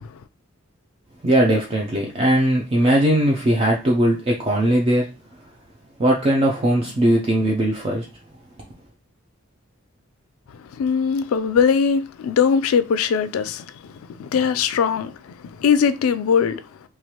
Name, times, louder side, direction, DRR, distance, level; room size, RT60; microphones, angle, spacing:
voice 1, 1.2-5.1 6.0-8.1, right 1 dB, 25° right, 0.4 m, -19 dB
voice 2, 10.5-16.6, left 6 dB, 85° left, 0.3 m, -21 dB
3.1 x 2.3 x 2.8 m
head